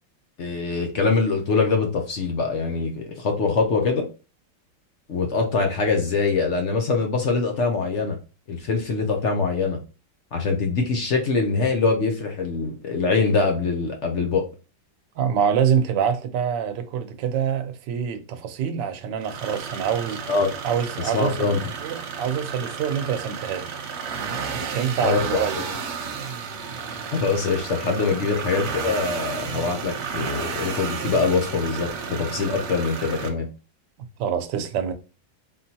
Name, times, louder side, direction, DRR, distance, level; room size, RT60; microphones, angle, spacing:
voice 1, 0.4-4.1 5.1-8.2 8.5-9.8 10.3-14.4 20.3-20.5 21.1-21.6 25.0-25.2 27.1-33.5, left 4 dB, 65° left, 0.7 m, -23 dB
voice 2, 15.2-20.2 20.6-21.4 21.8-23.7 24.5-25.7 28.2-28.4 34.2-34.9, right 8 dB, 70° right, 1.3 m, -25 dB
sound 1, 19.2-33.3, right 6 dB, 85° right, 0.6 m, -32 dB
4.3 x 3.7 x 2.8 m
omnidirectional pair, 2.1 m